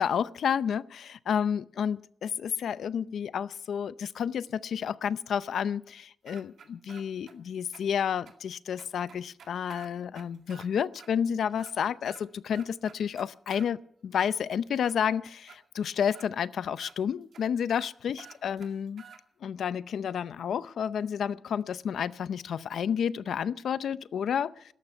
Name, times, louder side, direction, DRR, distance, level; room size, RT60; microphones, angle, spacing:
voice 1, 0.0-19.0 19.4-24.6, left 8 dB, 75° left, 16 dB, 0.6 m, -30 dB
sound 1, 6.3-7.3 7.7-7.8 8.3-8.4 8.8-10.7 11.0-11.1 11.5-12.2 12.5-13.7 14.1-15.0 15.5-15.6 16.1-16.3 16.8-16.9 17.3-17.4 17.7-17.9 18.2-19.2, right 6 dB, 65° right, 2.2 m, -51 dB
17.5 x 13.5 x 5.6 m, 0.68 s
wide cardioid pair, 160°, 0 cm